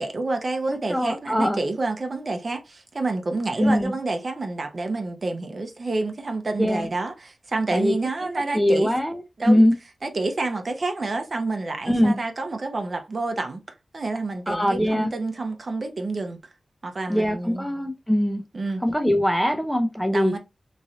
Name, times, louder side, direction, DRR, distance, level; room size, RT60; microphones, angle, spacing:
voice 1, 0.0-8.9 9.4-9.6 10.0-16.5 16.8-17.7 18.5-18.8 20.1-20.4, right 3 dB, 55° right, 0.7 m, -28 dB
voice 2, 0.9-1.6 3.6-3.9 6.6-6.9 7.7-7.9 8.5-9.7 11.9-12.2 14.5-15.1 17.1-18.4 18.8-20.4, left 1 dB, 5° left, 0.6 m, -22 dB
3.1 x 2.6 x 2.6 m
cardioid pair, 55°, 0 cm